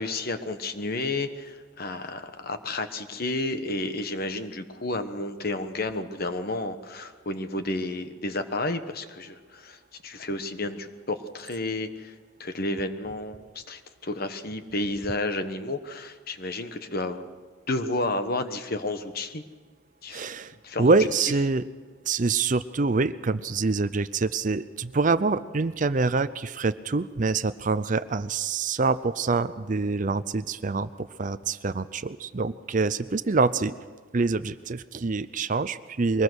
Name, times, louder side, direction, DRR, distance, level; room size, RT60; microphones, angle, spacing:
voice 1, 0.0-12.1 12.4-17.2 17.7-19.4 20.0-20.3 20.6-20.9, left 2 dB, 45° left, 9 dB, 1.2 m, -31 dB
voice 2, 20.1-20.5 20.8-21.6 22.1-33.7 34.1-36.2, right 3 dB, 35° right, 14 dB, 0.5 m, -25 dB
23.0 x 20.0 x 6.3 m, 1.4 s
head